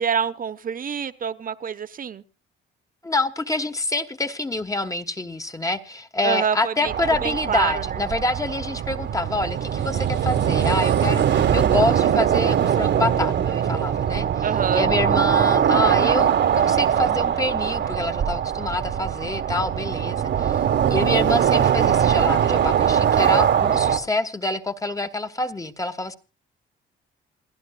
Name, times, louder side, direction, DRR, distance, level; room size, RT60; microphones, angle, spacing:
voice 1, 0.0-2.2 6.2-6.9 7.2-7.7 14.4-14.9, right 7 dB, 45° right, 13 dB, 1.0 m, -26 dB
voice 2, 3.0-20.6 20.9-26.2, left 2 dB, 15° left, 9 dB, 1.2 m, -27 dB
sound 1, 6.9-24.0, right 9 dB, 65° right, 1.4 m, -21 dB
28.0 x 11.0 x 2.3 m, 0.30 s
cardioid pair, 90°, 20 cm